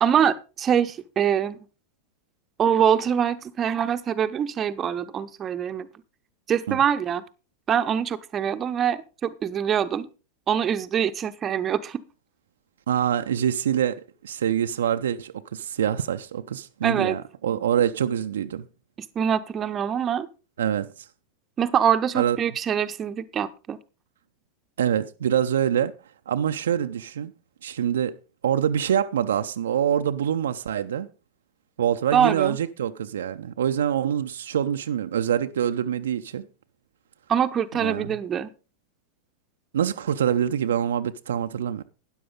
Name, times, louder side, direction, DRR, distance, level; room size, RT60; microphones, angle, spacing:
voice 1, 0.0-1.6 2.6-5.9 6.5-7.2 7.7-10.1 10.5-12.0 16.8-17.2 19.2-20.3 21.6-23.8 32.1-32.6 37.3-38.5, right 8 dB, 25° right, 0.8 m, -24 dB
voice 2, 12.9-18.6 20.6-21.1 22.1-22.4 24.8-25.9 26.3-27.3 27.6-28.1 28.4-31.1 31.8-36.5 37.7-38.2 39.7-41.8, right 9 dB, 65° right, 0.5 m, -25 dB
12.5 x 10.0 x 3.8 m
figure-of-eight pair, 90°, 0 cm